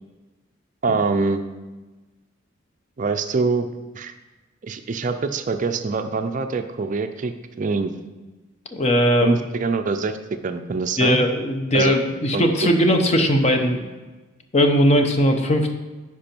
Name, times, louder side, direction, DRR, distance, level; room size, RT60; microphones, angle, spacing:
voice 1, 0.8-1.4 3.0-3.7 3.9-4.1 4.6-7.9 9.2-10.2 10.4-11.2 11.7-11.9 12.3-12.4, right 4 dB, 40° right, 8 dB, 0.4 m, -24 dB
voice 2, 8.7-9.4 11.0-13.9 14.5-15.7, equal, 30° left, 5 dB, 0.7 m, -19 dB
10.5 x 4.8 x 4.4 m, 1.2 s
head